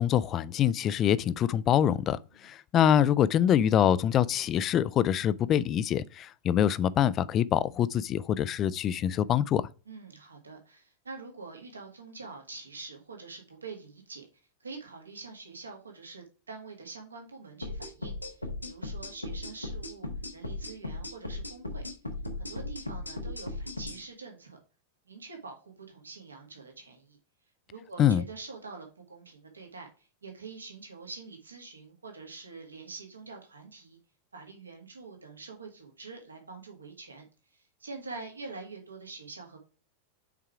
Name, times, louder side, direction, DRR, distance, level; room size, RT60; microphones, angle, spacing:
voice 1, 0.0-9.6 28.0-28.2, left 10 dB, 30° left, 0.4 m, -25 dB
voice 2, 9.9-14.3 14.6-21.8 22.3-24.6 25.1-27.2 27.7-34.0 34.3-39.6, right 4 dB, 75° right, 1.8 m, -45 dB
sound 1, 17.6-24.0, left 2 dB, 85° left, 1.1 m, -37 dB
5.8 x 4.7 x 4.7 m
figure-of-eight pair, 90°, 0 cm